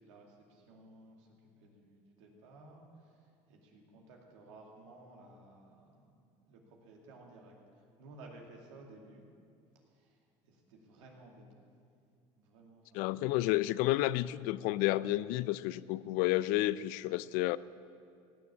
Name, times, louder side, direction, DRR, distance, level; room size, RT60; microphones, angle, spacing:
voice 1, 0.0-9.2 9.9-11.6 12.3-13.2, right 2 dB, 85° right, 0 dB, 2.4 m, -56 dB
voice 2, 12.9-17.6, left 16 dB, 70° left, 18 dB, 0.4 m, -31 dB
17.0 x 7.0 x 8.5 m, 2.4 s
supercardioid pair, 85°, 15 cm